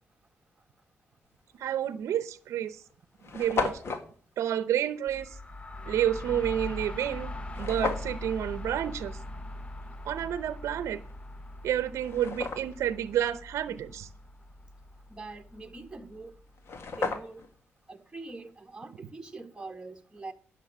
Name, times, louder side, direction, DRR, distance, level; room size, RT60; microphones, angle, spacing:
voice 1, 1.6-2.8 3.3-3.8 4.4-5.4 5.8-7.3 7.6-9.2 10.0-11.0 11.6-14.1, right 10 dB, 85° right, 0.7 m, -30 dB
sound 1, 1.7-1.9 2.6-2.7 2.9-3.0 3.2-4.1 7.5-8.2 11.1-11.2 11.7-12.9 16.2-16.3 16.6-17.6, left 4 dB, 60° left, 1.8 m, -33 dB
sound 2, 5.1-16.7, left 1 dB, 25° left, 0.9 m, -41 dB
voice 2, 15.1-16.3 16.9-17.4 17.9-20.3, right 3 dB, 15° right, 1.5 m, -43 dB
11.0 x 6.4 x 7.5 m
cardioid pair, 75°, 5 cm